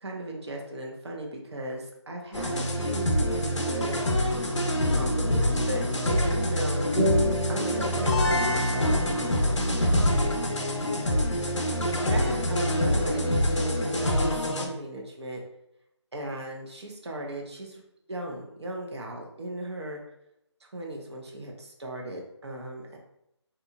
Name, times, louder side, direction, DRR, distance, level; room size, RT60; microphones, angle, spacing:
voice 1, 0.0-4.0 4.9-6.9 7.5-10.4 12.1-15.4 16.1-17.8 18.1-20.0 20.6-23.0, right 1 dB, 65° right, 0 dB, 0.6 m, -37 dB
sound 1, 2.3-14.7, equal, 75° left, 0.5 m, -25 dB
sound 2, 7.0-12.0, left 1 dB, 5° left, 0.5 m, -33 dB
2.8 x 2.3 x 2.3 m, 0.80 s
figure-of-eight pair, 160°, 15 cm